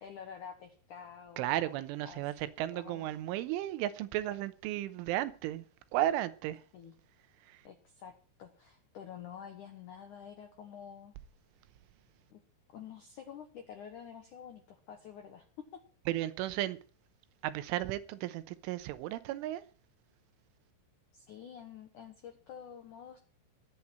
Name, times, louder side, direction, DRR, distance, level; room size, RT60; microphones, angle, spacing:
voice 1, 0.0-2.2 2.7-3.2 6.7-6.9 7.6-11.2 12.3-12.4 12.7-15.8 21.1-23.2, left 8 dB, 80° left, 1.8 m, -49 dB
voice 2, 1.4-5.7 5.9-6.6 7.4-7.6 16.1-16.8 17.4-19.6, right 14 dB, 90° right, 3.4 m, -34 dB
21.5 x 8.8 x 4.4 m
omnidirectional pair, 5.6 m